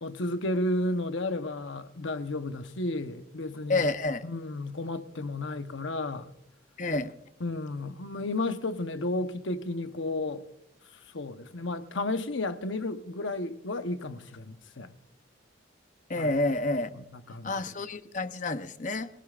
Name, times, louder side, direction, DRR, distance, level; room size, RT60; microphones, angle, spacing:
voice 1, 0.0-3.9 4.2-6.3 7.4-10.4 11.1-14.9 16.2-16.3 16.9-17.7, left 2 dB, 70° left, 0.9 m, -33 dB
voice 2, 3.7-4.3 6.8-7.1 16.1-16.9 17.4-19.1, left 2 dB, 40° left, 0.8 m, -29 dB
23.0 x 17.5 x 2.5 m
head